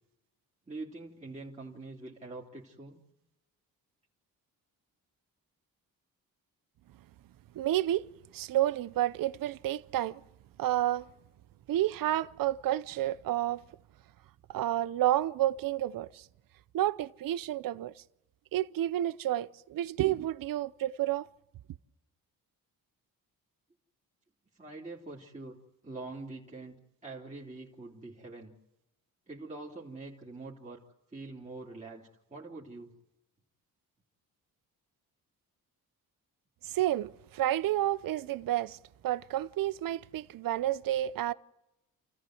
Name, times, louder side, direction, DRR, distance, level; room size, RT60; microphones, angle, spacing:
voice 1, 0.6-3.0 24.5-28.5 29.3-30.8 31.1-32.9, right 3 dB, 20° right, 3.1 m, -44 dB
voice 2, 7.5-8.1 8.3-10.2 10.6-11.1 11.7-13.6 14.5-16.3 16.7-17.9 18.5-21.3 36.6-38.8 39.0-41.3, right 13 dB, 65° right, 0.7 m, -30 dB
28.5 x 14.5 x 7.8 m
cardioid pair, 85°, 37 cm